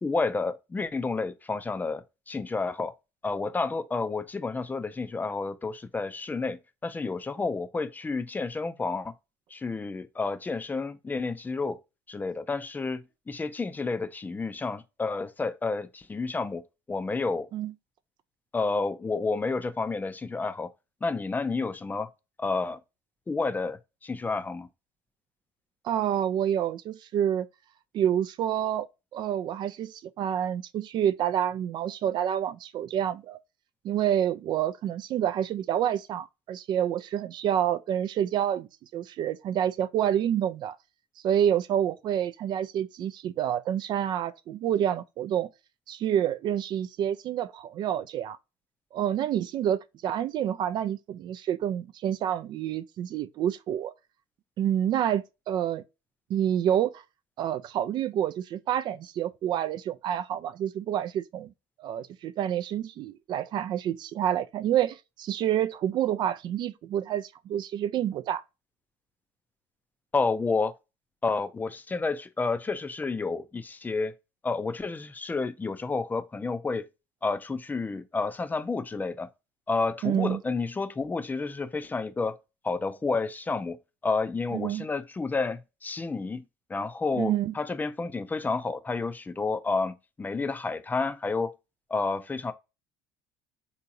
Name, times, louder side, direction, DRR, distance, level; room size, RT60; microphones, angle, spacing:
voice 1, 0.0-2.9 3.2-9.1 9.5-11.8 12.1-16.6 16.9-17.5 18.5-20.7 21.0-22.1 22.4-22.8 23.3-24.7 70.1-70.7 71.2-74.1 74.4-76.8 77.2-79.3 79.7-82.4 82.6-83.8 84.0-86.4 86.7-91.5 91.9-92.5, left 4 dB, 20° left, 0.5 m, -30 dB
voice 2, 25.8-27.5 27.9-28.9 29.1-33.4 33.8-40.8 41.2-45.5 45.9-48.4 48.9-53.9 54.6-55.8 56.3-57.0 57.4-61.5 61.8-68.4 80.0-80.4 84.5-84.8 87.2-87.5, right 10 dB, 55° right, 0.4 m, -28 dB
3.6 x 2.8 x 2.5 m
supercardioid pair, 85°, 9 cm